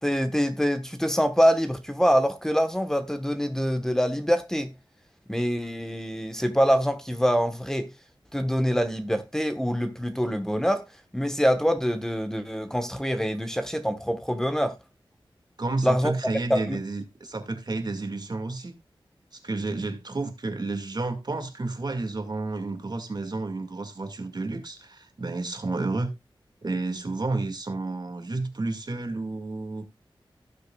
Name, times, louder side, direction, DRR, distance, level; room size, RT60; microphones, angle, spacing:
voice 1, 0.0-4.7 5.3-7.9 8.3-10.9 11.1-14.8 15.8-16.1 16.5-16.8, equal, 5° left, 1.2 m, -25 dB
voice 2, 15.6-18.7 19.3-26.1 26.6-29.9, right 3 dB, 50° right, 1.9 m, -31 dB
17.0 x 6.5 x 2.3 m
wide cardioid pair, 75°, 9 cm